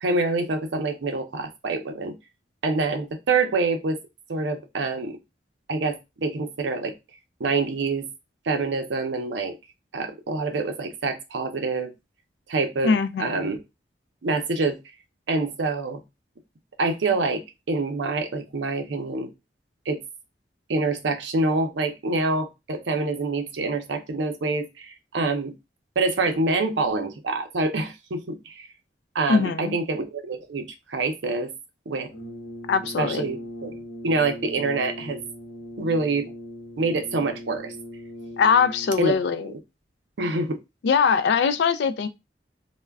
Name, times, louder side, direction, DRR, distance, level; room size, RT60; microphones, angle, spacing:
voice 1, 0.0-2.1 2.6-4.0 4.3-5.2 5.7-6.9 7.4-8.1 8.5-9.6 9.9-11.9 12.5-13.6 14.2-14.8 15.3-16.0 16.8-19.3 19.9-20.0 20.7-25.5 26.0-28.7 29.1-31.5 31.9-32.1 33.0-33.7 34.0-35.2 35.8-36.3 36.8-37.7 39.0-39.2 39.4-39.6 40.2-40.6, right 3 dB, 80° right, 0.5 m, -26 dB
voice 2, 12.8-13.5 29.3-29.8 32.7-33.3 38.4-39.5 40.8-42.1, left 5 dB, 70° left, 0.3 m, -22 dB
Brass instrument, 32.1-39.2, equal, 85° left, 0.7 m, -39 dB
2.3 x 2.1 x 3.3 m
head